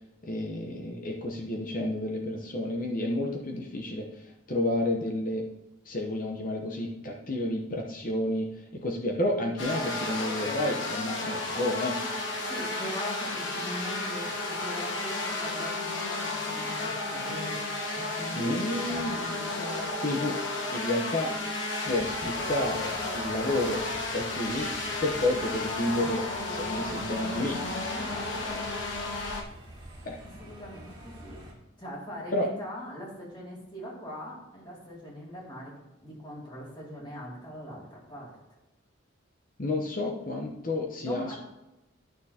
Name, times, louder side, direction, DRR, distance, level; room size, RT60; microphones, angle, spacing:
voice 1, 0.2-5.4 5.8-12.0 18.4-19.2 20.0-20.4 20.7-21.3 21.9-24.7 25.0-27.6 30.0-30.2 32.3-32.5 39.6-41.4, left 1 dB, 40° left, 1 dB, 0.8 m, -30 dB
sound 1, 9.6-29.4, left 2 dB, 65° left, 1.2 m, -33 dB
voice 2, 12.3-20.0 27.9-28.6 30.4-31.4 31.8-35.7 36.0-38.3 41.0-41.4, equal, 25° left, -4 dB, 2.6 m, -41 dB
sound 2, 21.9-31.5, equal, 20° right, 2.2 m, -48 dB
11.5 x 6.6 x 2.8 m, 0.98 s
head